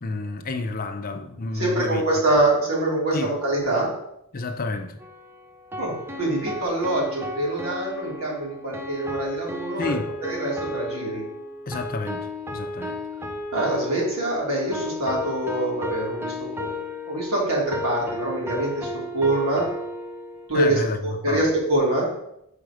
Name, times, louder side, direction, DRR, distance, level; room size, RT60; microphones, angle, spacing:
voice 1, 0.0-2.1 3.1-3.4 4.3-5.0 9.8-10.1 11.7-13.0 20.5-21.5, left 3 dB, 40° left, 0.6 m, -30 dB
voice 2, 1.5-3.9 5.8-11.2 13.5-19.7 20.5-22.1, right 1 dB, 75° right, 2.8 m, -25 dB
sound 1, 5.0-20.5, left 2 dB, 10° right, 0.5 m, -34 dB
6.2 x 4.9 x 4.9 m
head